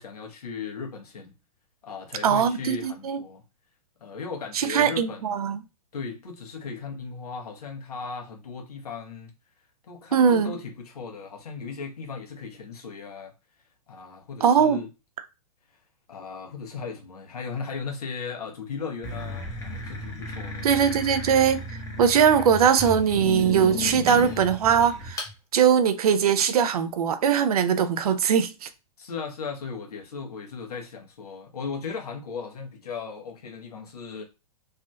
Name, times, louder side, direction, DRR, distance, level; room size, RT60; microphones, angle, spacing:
voice 1, 0.0-1.3 1.8-3.4 4.0-5.5 5.9-9.3 9.9-13.3 13.9-14.9 16.1-21.0 29.0-34.2, left 5 dB, 80° left, 1.1 m, -37 dB
voice 2, 2.2-3.2 4.5-5.6 10.1-10.5 14.4-14.8 20.6-21.6 22.0-25.2 25.5-28.7, right 7 dB, 75° right, 0.6 m, -21 dB
sound 1, 19.0-25.3, left 1 dB, 15° left, 0.9 m, -34 dB
3.4 x 2.7 x 2.2 m
hypercardioid pair, 125°, 19 cm